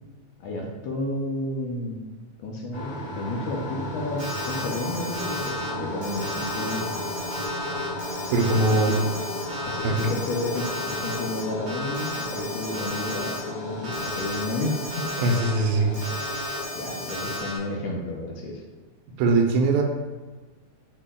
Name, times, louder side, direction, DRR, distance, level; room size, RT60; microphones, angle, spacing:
voice 1, 0.4-2.0 2.4-6.8 8.5-9.0 9.6-15.1 16.7-18.6, left 2 dB, 80° left, 0 dB, 1.7 m, -31 dB
sound 1, 2.7-17.5, left 2 dB, 55° left, 0.8 m, -34 dB
Alarm, 4.2-5.7 6.0-11.4 11.7-13.4 13.8-15.5 15.9-17.6, left 1 dB, 55° right, 2.0 m, -34 dB
voice 2, 8.3-8.9 9.8-10.0 15.2-15.9 19.2-19.8, right 3 dB, 85° right, 2 dB, 2.0 m, -21 dB
6.1 x 2.1 x 3.6 m, 1.3 s
omnidirectional pair, 3.4 m